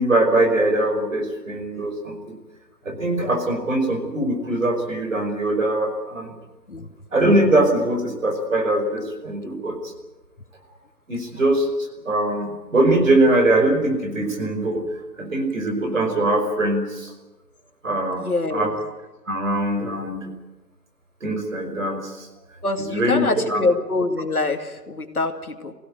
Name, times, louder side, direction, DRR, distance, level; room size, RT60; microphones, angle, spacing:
voice 1, 0.0-2.3 2.8-6.3 7.1-9.8 11.1-11.7 12.0-14.8 15.2-17.1 17.8-18.2 18.5-18.8 19.3-20.3 21.2-22.3 22.8-23.6, right 1 dB, 50° right, 3 dB, 5.5 m, -22 dB
voice 2, 18.2-18.7 22.6-25.7, left 3 dB, 60° left, 6 dB, 2.3 m, -25 dB
24.0 x 16.5 x 9.0 m, 1.1 s
figure-of-eight pair, 175°, 50 cm